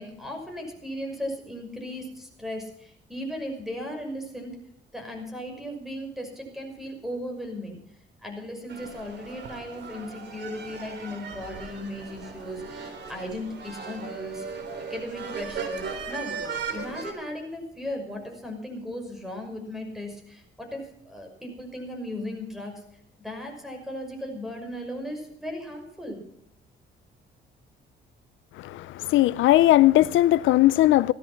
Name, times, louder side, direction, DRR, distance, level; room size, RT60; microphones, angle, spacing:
voice 1, 0.0-4.5 4.9-7.8 8.2-14.4 14.9-16.4 16.7-22.8 23.2-26.2, left 1 dB, ahead, 5.9 m, -36 dB
sound 1, 8.7-17.1, right 5 dB, 60° right, 3.8 m, -37 dB
voice 2, 28.6-31.1, left 15 dB, 80° left, 0.5 m, -19 dB
16.5 x 13.0 x 5.8 m
cardioid pair, 90°, 20 cm